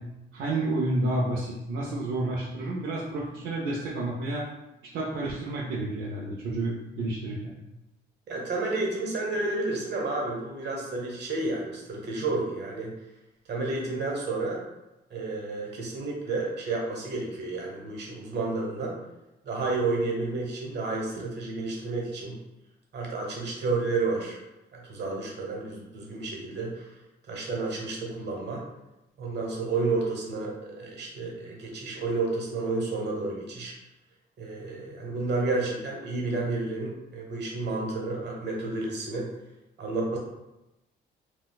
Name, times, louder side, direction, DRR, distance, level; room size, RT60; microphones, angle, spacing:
voice 1, 0.3-4.4 4.9-7.6, right 2 dB, 75° right, -4 dB, 0.6 m, -30 dB
voice 2, 8.3-12.9 13.5-14.6 15.1-19.0 19.4-22.4 22.9-24.4 24.7-26.9 27.3-28.6 29.2-33.7 34.4-39.3 39.8-40.2, right 3 dB, 60° right, -1 dB, 1.0 m, -31 dB
3.9 x 2.2 x 2.3 m, 0.94 s
cardioid pair, 90°, 20 cm